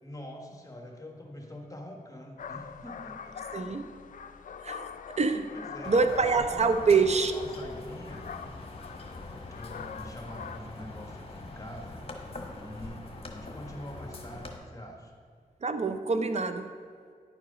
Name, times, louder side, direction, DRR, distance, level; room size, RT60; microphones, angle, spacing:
voice 1, 0.0-3.5 5.5-6.9 7.3-8.3 9.5-12.0 12.3-13.0 13.3-15.1, left 1 dB, 20° left, 1 dB, 1.3 m, -45 dB
sound 1, 2.4-10.6, left 7 dB, 60° left, 0.4 m, -43 dB
voice 2, 3.5-3.9 4.6-5.6 5.9-7.3 15.6-16.7, right 4 dB, 45° right, 9 dB, 0.5 m, -26 dB
sound 2, 5.8-14.6, left 2 dB, 40° left, 1.3 m, -43 dB
10.0 x 4.7 x 4.9 m, 2.2 s
cardioid pair, 55°, 15 cm